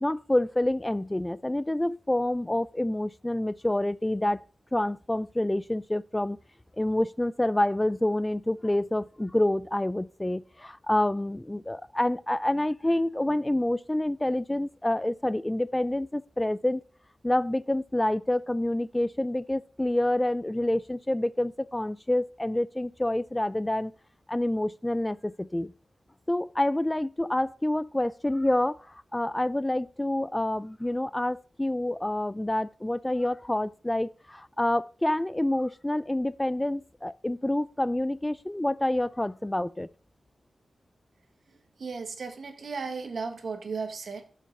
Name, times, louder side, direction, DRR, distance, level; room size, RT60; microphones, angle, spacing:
voice 1, 0.0-4.4 4.7-6.4 6.8-16.8 17.2-23.9 24.3-25.7 26.3-39.9, left 1 dB, 15° left, 0.4 m, -27 dB
voice 2, 41.8-44.3, right 4 dB, 70° right, 1.5 m, -35 dB
7.3 x 5.8 x 5.4 m
cardioid pair, 60°, 0 cm